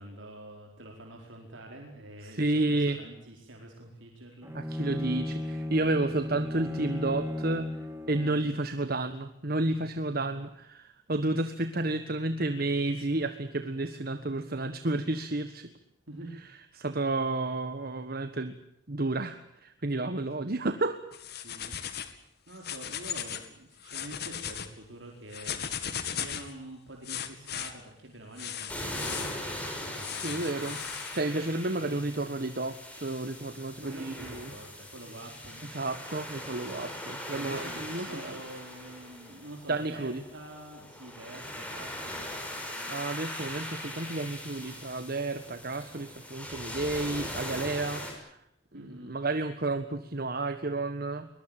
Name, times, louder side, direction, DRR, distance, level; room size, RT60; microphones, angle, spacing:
voice 1, 0.0-4.5 16.1-16.3 20.0-20.1 21.4-21.7 22.5-30.8 33.8-35.6 37.3-43.0 43.4-43.6 48.7-49.1, right 1 dB, 70° right, 1 dB, 4.6 m, -47 dB
voice 2, 2.2-3.0 4.5-7.8 8.1-15.7 16.7-18.5 18.9-21.0 30.2-30.8 31.1-34.5 35.7-38.4 39.7-40.2 42.9-48.4 48.7-51.3, right 2 dB, 50° right, 10 dB, 1.4 m, -31 dB
Bowed string instrument, 4.4-8.6, left 1 dB, 15° right, 3.3 m, -35 dB
sound 1, 21.1-22.2 22.5-23.5 23.8-24.7 25.3-26.5 27.0-27.7 28.4-29.4 30.0-31.2, left 9 dB, 55° left, 2.4 m, -37 dB
sound 2, 28.7-48.1, left 1 dB, 5° left, 6.5 m, -40 dB
22.5 x 21.5 x 8.9 m, 0.77 s
head